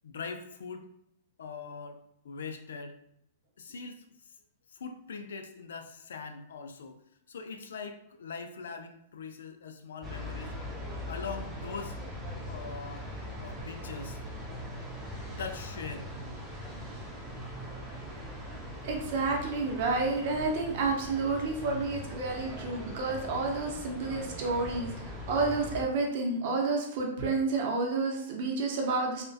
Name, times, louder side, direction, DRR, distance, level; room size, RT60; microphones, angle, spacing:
voice 1, 0.0-0.9 1.4-2.0 2.2-2.9 3.6-4.0 4.7-7.0 7.3-10.5 11.1-12.0 12.5-13.1 13.4-14.2 15.3-16.1, left 5 dB, 90° left, 7 dB, 0.3 m, -41 dB
sound 1, 10.0-25.8, equal, 10° right, 0.4 m, -41 dB
voice 2, 18.8-29.3, right 3 dB, 50° right, 1 dB, 0.6 m, -30 dB
2.5 x 2.1 x 2.3 m, 0.75 s
hypercardioid pair, 145°, 0 cm